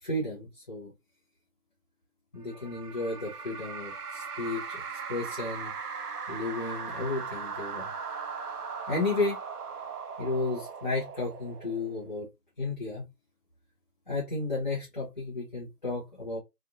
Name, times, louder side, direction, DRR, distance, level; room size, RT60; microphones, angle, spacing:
voice 1, 0.0-0.9 2.3-5.7 6.3-7.9 8.9-9.4 10.2-12.3 12.6-13.0 14.1-16.4, left 2 dB, 30° left, 0.9 m, -33 dB
sound 1, 2.5-12.2, right 5 dB, 70° right, 0.7 m, -39 dB
3.4 x 2.1 x 2.5 m
figure-of-eight pair, 170°, 47 cm